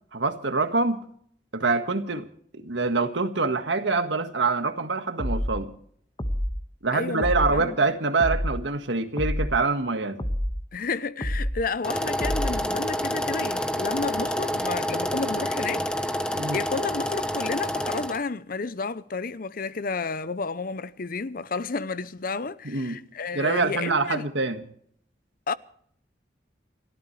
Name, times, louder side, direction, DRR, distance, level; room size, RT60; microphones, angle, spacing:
voice 1, 0.1-1.1 1.5-2.3 2.5-5.7 6.8-10.2 16.3-16.6 22.6-23.0 23.3-24.6, right 3 dB, 75° right, 1.7 m, -25 dB
sound 1, 5.2-5.6 6.2-6.6 7.2-7.6 8.2-8.6 9.2-9.6 10.2-10.6 11.2-11.6 12.2-12.6, equal, 25° left, 1.6 m, -27 dB
voice 2, 6.9-7.8 10.7-16.2 16.5-24.3 25.5-25.6, left 4 dB, 50° left, 0.7 m, -31 dB
sound 2, 11.8-18.2, equal, 5° left, 1.1 m, -28 dB
29.5 x 13.0 x 3.3 m
head